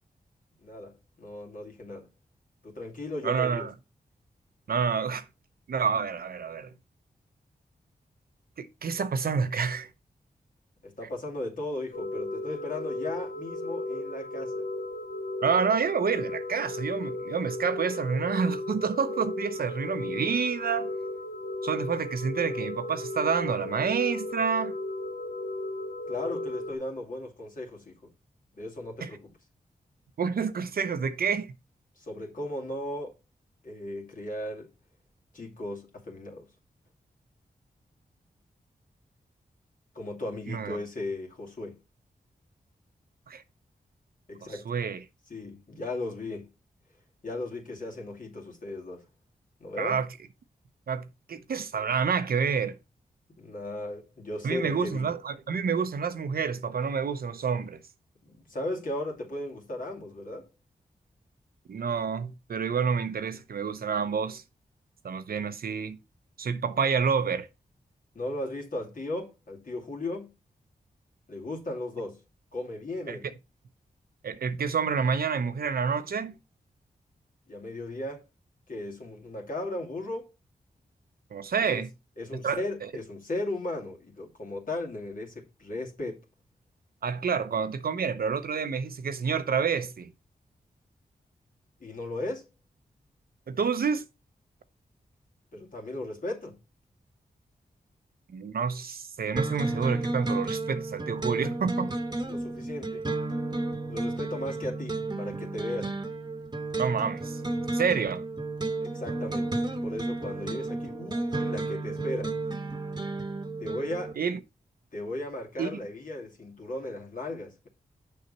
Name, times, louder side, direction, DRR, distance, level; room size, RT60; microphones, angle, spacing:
voice 1, 0.6-2.1 2.6-3.7 10.8-14.7 26.1-28.1 28.6-29.3 32.0-33.2 33.6-34.7 35.3-36.5 39.9-41.8 44.3-44.7 45.3-46.5 47.2-49.1 49.6-50.0 53.4-55.1 58.2-60.5 68.1-70.3 71.3-72.2 72.5-73.3 77.5-78.2 78.7-80.3 81.7-81.8 82.2-86.2 91.8-92.4 95.5-96.6 102.3-103.1 103.9-105.9 108.8-112.4 113.6-114.2 114.9-117.7, left 2 dB, 60° left, 2.4 m, -36 dB
voice 2, 3.2-3.7 4.7-5.2 5.7-6.7 8.6-9.9 15.4-20.9 21.6-24.7 29.0-29.1 30.2-31.5 40.5-40.8 43.3-43.4 44.7-45.0 49.8-50.1 50.9-52.8 54.4-57.8 61.7-64.4 65.0-66.0 66.4-67.5 73.1-73.2 74.2-76.3 81.3-81.9 82.4-82.9 87.0-90.1 93.5-94.0 98.3-101.9 106.8-107.4 107.7-108.2 114.2-114.4 115.6-115.8, right 6 dB, 70° right, 0.8 m, -28 dB
sound 1, 11.9-26.7, left 2 dB, 80° left, 0.9 m, -35 dB
sound 2, 99.4-114.1, right 2 dB, 25° right, 1.2 m, -32 dB
6.7 x 5.7 x 4.1 m
cardioid pair, 55°, 16 cm